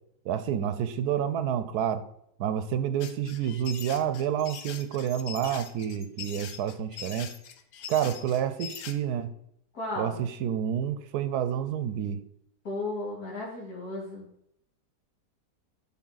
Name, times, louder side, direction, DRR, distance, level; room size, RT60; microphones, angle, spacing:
voice 1, 0.2-2.0 2.4-7.4 7.9-9.3 10.0-12.2, right 9 dB, 75° right, 11 dB, 1.1 m, -29 dB
sound 1, 3.0-8.9, left 8 dB, 85° left, 1.3 m, -42 dB
voice 2, 9.7-10.2 12.6-14.3, left 2 dB, 65° left, -4 dB, 2.7 m, -34 dB
11.5 x 3.9 x 3.9 m, 0.73 s
omnidirectional pair, 1.7 m